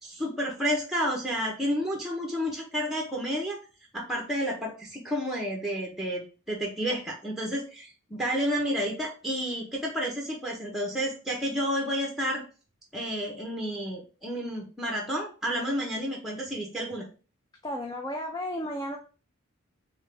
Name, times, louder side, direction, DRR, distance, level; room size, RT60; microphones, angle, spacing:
voice 1, 0.0-3.6 3.9-12.4 12.9-17.1, equal, ahead, 0 dB, 0.8 m, -30 dB
voice 2, 17.6-19.0, left 1 dB, 20° left, 2 dB, 0.4 m, -33 dB
3.7 x 3.7 x 3.3 m, 0.35 s
head